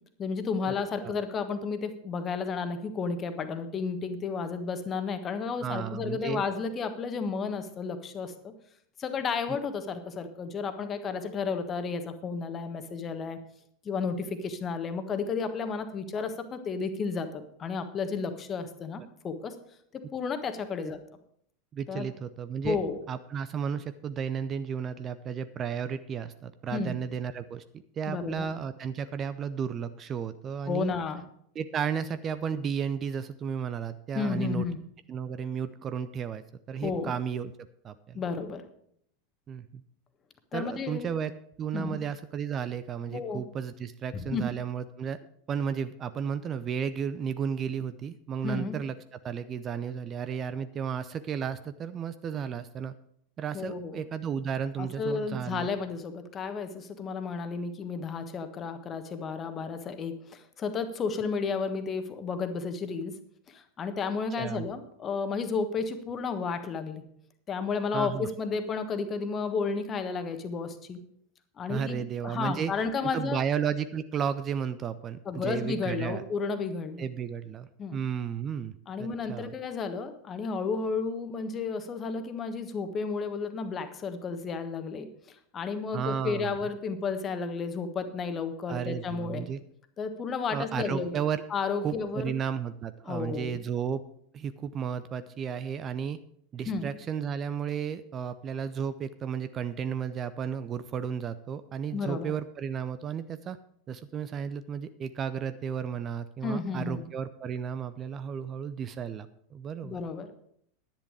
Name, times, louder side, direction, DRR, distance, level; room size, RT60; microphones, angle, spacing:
voice 1, 0.2-8.5 9.0-13.4 13.8-19.5 19.9-21.0 21.9-22.1 22.6-23.0 26.7-27.0 28.1-28.5 30.7-31.2 34.1-34.8 36.8-37.1 38.1-38.6 40.5-41.1 41.7-42.0 43.1-43.4 44.1-44.4 48.4-48.7 53.5-54.0 54.8-63.1 63.5-67.0 67.5-71.0 71.6-73.4 75.2-77.0 77.8-78.0 78.9-89.5 90.0-91.2 91.5-92.3 93.1-93.6 96.7-96.9 101.9-102.3 106.4-107.0 109.8-110.3, left 5 dB, 30° left, 8 dB, 1.4 m, -32 dB
voice 2, 5.6-6.4 20.8-20.9 21.7-22.8 23.1-27.6 28.0-30.9 31.6-34.7 35.1-37.5 37.8-38.2 39.5-39.8 40.5-41.3 41.6-45.2 45.5-52.9 53.4-55.7 64.4-64.7 67.9-68.3 71.7-72.7 73.1-76.2 77.0-79.5 85.9-86.7 88.7-89.6 90.5-91.4 91.8-94.0 94.3-96.2 96.5-103.6 103.9-110.0, right 7 dB, 30° right, 13 dB, 0.6 m, -33 dB
10.5 x 10.5 x 4.9 m, 0.68 s
figure-of-eight pair, 85°, 0 cm